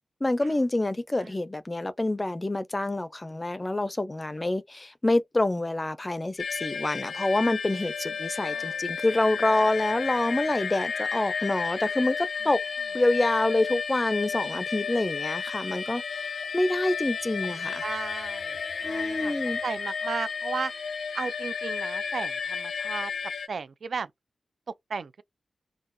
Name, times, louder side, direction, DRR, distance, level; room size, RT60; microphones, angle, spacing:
voice 1, 0.2-12.6 12.9-16.3 16.5-17.8 18.8-19.6, left 2 dB, 20° left, 0.4 m, -27 dB
sound 1, 6.4-23.5, left 6 dB, 80° left, 0.6 m, -32 dB
voice 2, 8.4-8.8 17.6-19.3 19.6-20.7 21.1-24.1 24.7-25.2, right 5 dB, 60° right, 0.4 m, -35 dB
3.7 x 2.3 x 2.6 m
wide cardioid pair, 135°, 0 cm